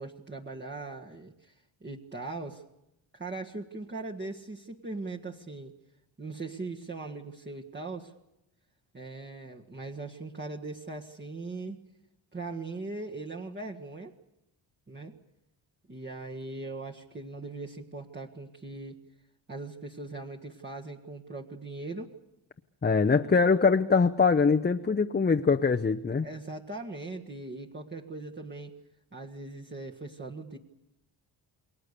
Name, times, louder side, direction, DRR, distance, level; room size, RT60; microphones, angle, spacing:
voice 1, 0.0-2.6 3.1-5.7 6.2-8.1 8.9-11.8 12.3-14.1 14.9-15.1 15.9-19.0 19.5-22.1 26.2-28.8 29.1-30.6, right 3 dB, 25° right, -1 dB, 1.7 m, -40 dB
voice 2, 22.8-26.3, left 5 dB, 20° left, 5 dB, 0.8 m, -23 dB
29.0 x 21.5 x 6.8 m, 0.86 s
cardioid pair, 100°, 45 cm